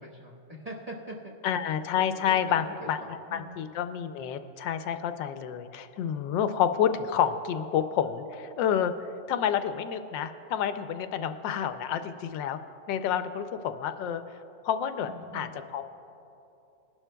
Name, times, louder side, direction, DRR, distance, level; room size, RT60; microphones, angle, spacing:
voice 1, 0.0-1.3 1.9-3.7 15.0-15.6, right 1 dB, 25° right, -5 dB, 1.1 m, -43 dB
voice 2, 1.4-8.9 9.3-12.6 12.9-14.2 14.6-15.8, left 9 dB, 80° left, 10 dB, 1.2 m, -29 dB
21.0 x 11.5 x 2.2 m, 2.9 s
omnidirectional pair, 2.0 m